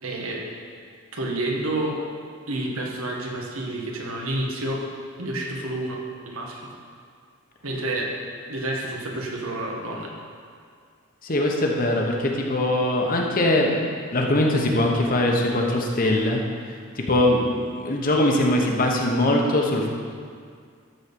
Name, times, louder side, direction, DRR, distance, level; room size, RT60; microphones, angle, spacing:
voice 1, 0.0-0.4 1.1-2.0 2.5-4.8 5.2-6.0 6.2-6.6 7.6-8.1 8.5-10.1, right 1 dB, 85° right, -1 dB, 1.7 m, -29 dB
voice 2, 11.2-13.7 14.1-16.4 16.7-19.9, left 1 dB, 40° left, 0 dB, 1.1 m, -22 dB
12.5 x 4.5 x 6.9 m, 2.1 s
head